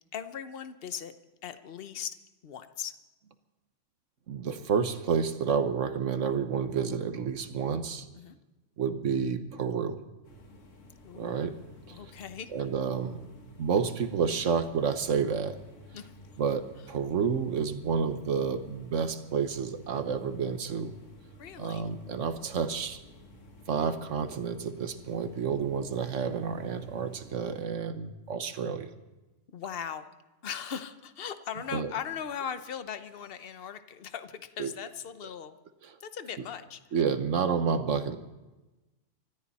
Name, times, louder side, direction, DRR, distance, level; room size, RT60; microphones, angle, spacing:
voice 1, 0.1-1.1 1.4-2.2 2.4-2.9 8.1-8.3 11.0-11.3 11.9-12.5 15.9-16.1 21.4-21.8 29.5-30.1 30.4-35.5 36.0-36.8, left 8 dB, 55° left, 10 dB, 1.1 m, -39 dB
voice 2, 4.3-8.1 8.8-10.0 11.1-11.5 11.9-12.0 12.5-13.2 13.6-15.6 16.4-20.9 21.6-23.0 23.7-28.9 31.7-31.9 34.6-34.7 35.8-35.9 36.9-38.2, right 6 dB, 75° right, 10 dB, 1.4 m, -30 dB
sound 1, 10.2-27.7, left 1 dB, 80° left, 2.1 m, -53 dB
25.5 x 13.5 x 4.2 m, 1.1 s
omnidirectional pair, 1.3 m